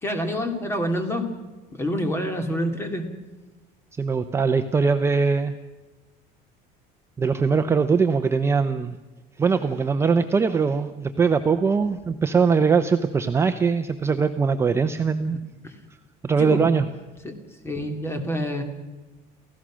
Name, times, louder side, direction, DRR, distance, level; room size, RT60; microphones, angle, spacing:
voice 1, 0.0-1.3 1.7-3.1 15.6-15.7 16.4-16.6 17.2-17.3 17.6-18.6, equal, 15° left, 6 dB, 2.6 m, -27 dB
voice 2, 3.9-5.6 7.2-9.0 9.4-15.4 16.2-16.9, right 5 dB, 15° right, 7 dB, 0.7 m, -21 dB
29.5 x 16.0 x 6.3 m, 1.2 s
cardioid pair, 165°, 17 cm